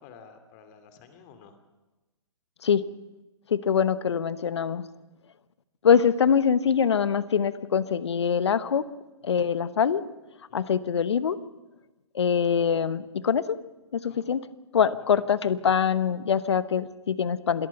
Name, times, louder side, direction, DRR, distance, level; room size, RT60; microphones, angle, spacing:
voice 1, 0.0-1.6 10.5-10.7 14.1-14.3 15.1-15.2, left 6 dB, 35° left, 8 dB, 2.9 m, -51 dB
voice 2, 3.5-4.8 5.8-8.9 9.2-10.0 10.5-11.4 12.1-13.6 13.9-14.5 14.7-17.7, left 7 dB, 65° left, 16 dB, 1.1 m, -24 dB
26.5 x 19.0 x 5.8 m, 1.1 s
figure-of-eight pair, 125°, 15 cm